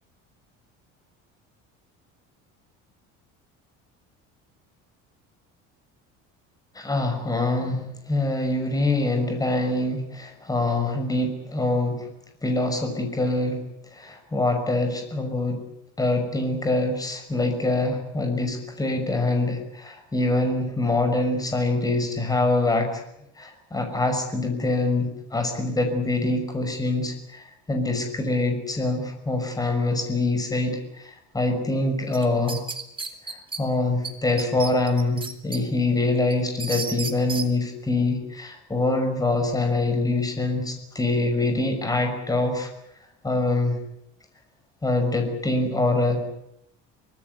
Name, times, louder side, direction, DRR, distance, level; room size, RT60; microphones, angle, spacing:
voice 1, 6.7-12.1 12.4-13.6 13.9-15.6 16.0-23.0 23.4-32.6 33.2-42.7 43.2-43.8 44.8-46.3, left 2 dB, 10° left, 6 dB, 6.0 m, -25 dB
sound 1, 32.1-33.6 34.0-34.1 34.4-35.6 36.0-37.5, right 4 dB, 15° right, 2.8 m, -32 dB
25.5 x 19.0 x 9.7 m, 0.79 s
cardioid pair, 150°, 29 cm